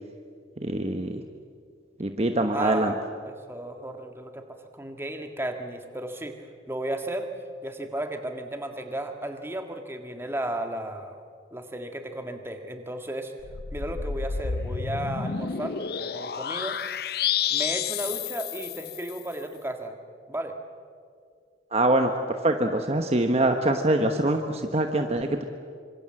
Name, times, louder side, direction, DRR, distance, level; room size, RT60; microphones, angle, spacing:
voice 1, 0.6-1.2 2.0-2.9 21.7-22.1 22.4-25.4, right 1 dB, 35° right, 5 dB, 1.1 m, -24 dB
voice 2, 2.5-4.4 4.7-7.3 7.6-11.2 11.5-13.3 13.7-16.8 17.5-20.0 20.3-20.6, right 1 dB, 15° right, 5 dB, 1.8 m, -34 dB
sound 1, 13.4-19.2, left 7 dB, 55° left, 0.6 m, -30 dB
26.5 x 25.5 x 7.7 m, 2.2 s
head